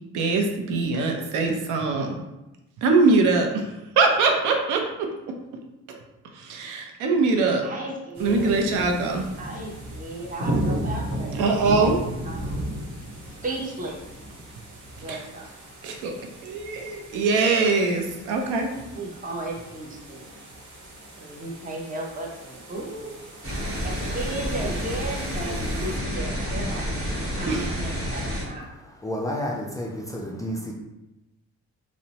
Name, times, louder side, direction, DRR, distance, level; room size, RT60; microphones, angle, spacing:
voice 1, 0.1-2.2 2.8-3.7 4.0-5.1 6.3-7.6 8.2-9.3 11.4-12.0 15.1-15.2 15.8-16.1 16.4-18.7 27.5-27.7, right 3 dB, 90° right, 0.5 m, -22 dB
voice 2, 7.6-8.6 9.4-11.5 12.2-12.7 13.4-14.0 15.0-15.5 17.7-17.8 18.0-18.1 18.9-20.2 21.2-23.3 23.8-27.0 27.3-28.7, right 2 dB, 25° right, 0.7 m, -35 dB
sound 1, 8.1-26.0, right 1 dB, 70° right, 0.9 m, -35 dB
sound 2, 23.4-28.4, equal, 45° right, 1.1 m, -29 dB
voice 3, 29.0-30.7, equal, 10° left, 0.3 m, -30 dB
2.7 x 2.0 x 2.8 m
cardioid pair, 90°, 30 cm